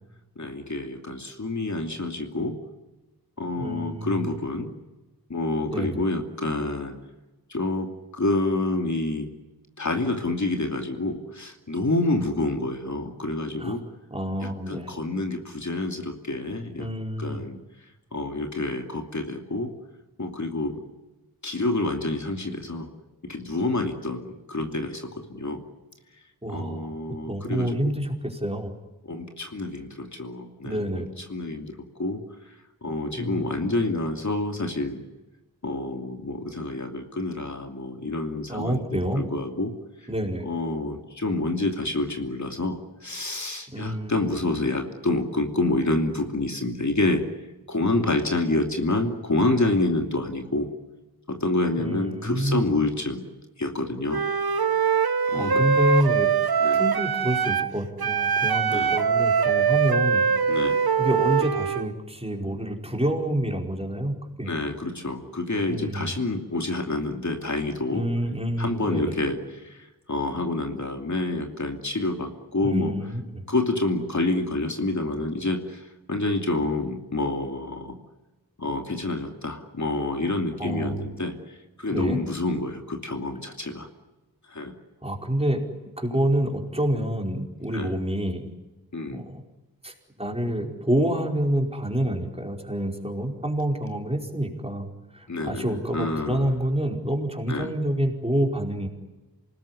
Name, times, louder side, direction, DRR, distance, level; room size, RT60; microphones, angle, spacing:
voice 1, 0.4-2.6 3.4-4.7 5.3-7.0 7.5-9.3 9.8-13.8 14.4-16.9 17.2-17.6 18.1-19.7 20.2-20.8 21.4-22.9 23.2-25.6 26.5-28.0 29.0-32.2 32.8-35.0 35.6-39.7 40.4-47.2 47.7-50.7 51.3-53.3 53.6-54.2 55.3-55.7 56.6-56.9 58.7-59.0 60.5-60.8 64.5-68.1 68.6-72.9 73.5-78.0 78.6-83.9 84.5-84.7 87.7-87.9 88.9-89.2 95.3-96.6 97.5-97.7, left 2 dB, 50° left, 4 dB, 2.8 m, -28 dB
voice 2, 3.6-4.2 5.7-6.0 13.6-13.8 14.1-14.9 16.8-17.4 26.4-26.9 27.3-28.7 30.6-31.1 33.1-33.4 38.5-39.3 40.1-40.5 43.7-44.3 51.8-52.7 54.9-56.3 56.7-60.3 61.0-64.5 65.7-66.1 67.9-69.1 72.6-73.4 80.6-81.1 81.9-82.2 85.0-88.4 89.1-89.4 89.8-94.9 95.1-98.9, right 1 dB, 15° right, 2 dB, 4.8 m, -28 dB
Wind instrument woodwind instrument, 54.1-57.7 58.0-61.9, right 6 dB, 80° right, 1.2 m, -23 dB
27.5 x 19.5 x 9.8 m, 1.1 s
wide cardioid pair, 80°, 37 cm